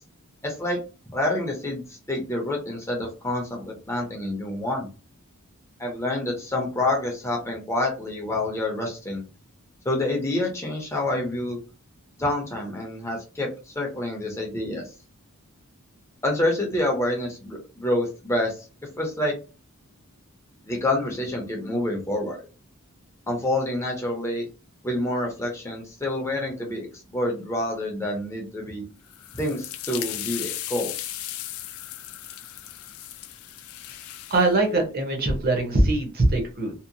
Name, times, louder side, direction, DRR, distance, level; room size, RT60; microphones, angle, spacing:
voice 1, 0.4-0.8 1.1-4.9 5.8-9.2 9.8-11.6 12.2-14.8 16.2-18.6 19.0-19.4 20.7-22.4 23.3-24.5 24.8-28.8 29.3-31.1, left 1 dB, 15° left, 0 dB, 0.6 m, -27 dB
sound 1, 29.1-34.5, left 13 dB, 70° left, 0.3 m, -36 dB
voice 2, 34.3-36.7, right 2 dB, 45° right, 2 dB, 0.8 m, -22 dB
2.8 x 2.0 x 2.5 m, 0.33 s
head